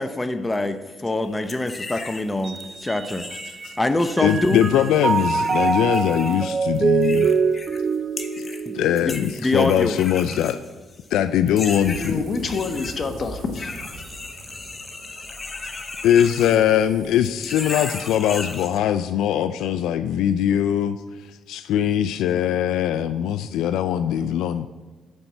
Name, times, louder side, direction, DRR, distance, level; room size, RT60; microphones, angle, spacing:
voice 1, 0.0-3.3 3.8-4.7 8.7-10.0, left 2 dB, 15° left, 9 dB, 0.6 m, -25 dB
sound 1, 1.5-2.2 2.6-7.8 8.2-8.7 9.0-11.1 11.5-12.9 13.5-17.0 17.2-18.8, left 3 dB, 30° left, 1.0 m, -36 dB
Mallet percussion, 2.4-3.8 4.2-9.6, right 5 dB, 40° right, 0.5 m, -24 dB
voice 2, 4.2-7.3 8.7-10.6 11.1-12.2 16.0-21.0 21.5-24.7, left 10 dB, 85° left, 12 dB, 0.3 m, -21 dB
sound 2, 11.8-17.7, right 3 dB, 65° right, 1.5 m, -42 dB
voice 3, 11.9-13.7, left 4 dB, 50° left, 6 dB, 1.2 m, -27 dB
9.5 x 4.5 x 7.1 m, 1.3 s
cardioid pair, 90°, 0 cm